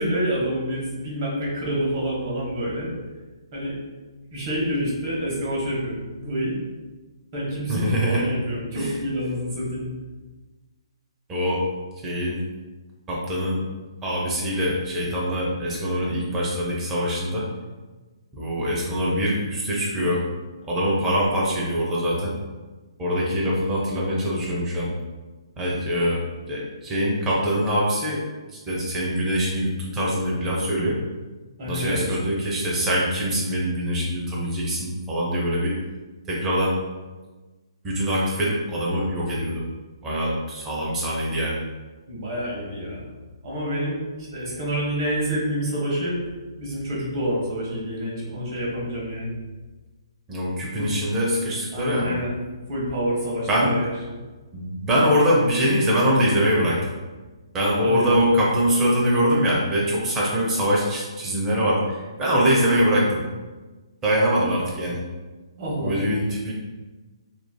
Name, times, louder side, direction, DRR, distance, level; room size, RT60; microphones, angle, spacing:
voice 1, 0.0-2.9 3.5-3.8 4.3-6.6 7.3-9.9 31.6-32.2 42.1-43.0 43.4-46.2 46.6-49.3 50.8-50.9 51.7-52.3 52.7-53.9 57.8-58.2 65.6-66.0, equal, 40° right, -5 dB, 1.1 m, -27 dB
voice 2, 7.7-8.2 8.7-8.9 11.3-11.7 12.0-12.4 13.1-13.6 14.0-17.4 18.3-20.2 20.6-22.3 23.0-24.9 25.6-26.2 26.5-28.2 28.7-31.0 31.7-35.7 36.3-36.7 37.8-39.6 40.0-41.6 50.3-52.1 53.5-53.8 54.5-56.9 57.5-63.2 64.0-65.0 65.8-66.5, equal, 15° right, -5 dB, 0.7 m, -23 dB
3.0 x 2.5 x 2.3 m, 1.3 s
hypercardioid pair, 140°, 3 cm